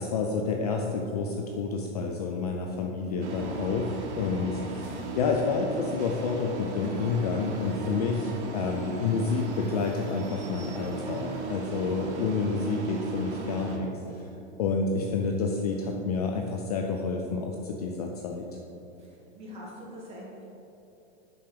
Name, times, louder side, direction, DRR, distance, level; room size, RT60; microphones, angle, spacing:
voice 1, 0.0-3.9 4.2-14.3 14.6-18.6, left 4 dB, 35° left, 2 dB, 0.4 m, -29 dB
sound 1, 3.2-13.8, right 3 dB, 75° right, 1.2 m, -37 dB
voice 2, 19.0-20.4, equal, 20° right, -5 dB, 1.5 m, -44 dB
5.7 x 4.9 x 5.1 m, 2.9 s
supercardioid pair, 155°, 34 cm